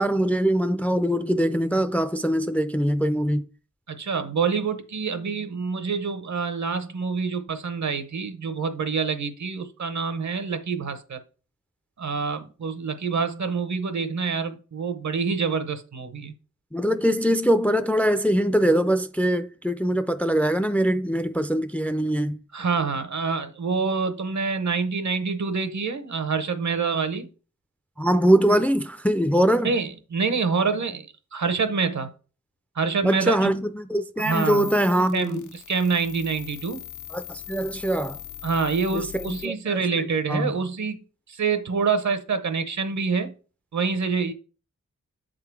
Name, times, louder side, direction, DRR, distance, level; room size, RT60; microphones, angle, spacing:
voice 1, 0.0-3.4 16.7-22.4 28.0-29.7 33.0-35.5 37.1-38.2 38.9-40.5, right 1 dB, 5° left, 0.3 m, -23 dB
voice 2, 3.9-11.2 12.0-16.3 22.5-27.3 29.6-32.1 32.7-33.5 34.2-34.7 35.1-36.8 38.4-41.0 41.3-43.3 43.7-44.3, right 5 dB, 70° right, 0.9 m, -26 dB
sound 1, 34.2-39.5, left 11 dB, 80° left, 0.6 m, -40 dB
7.2 x 3.8 x 4.6 m
wide cardioid pair, 90°, 30 cm